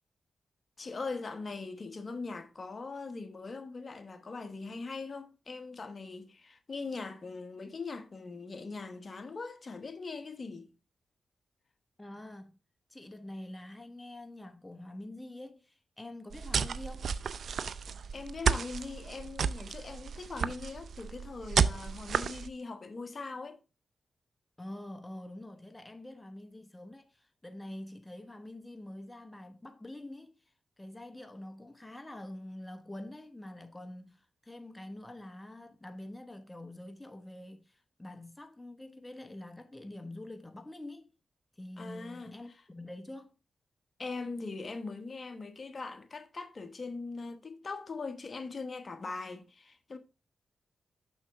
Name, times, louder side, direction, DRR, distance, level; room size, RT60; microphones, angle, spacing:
voice 1, 0.8-10.7 18.1-23.6 41.8-42.3 44.0-50.0, left 4 dB, 50° left, 1.1 m, -41 dB
voice 2, 12.0-12.6 12.9-17.2 24.6-41.1 41.6-43.4, left 1 dB, 15° left, 1.1 m, -46 dB
sound 1, 16.3-22.5, right 6 dB, 75° right, 0.4 m, -32 dB
6.3 x 6.3 x 3.5 m
cardioid pair, 50°, 0 cm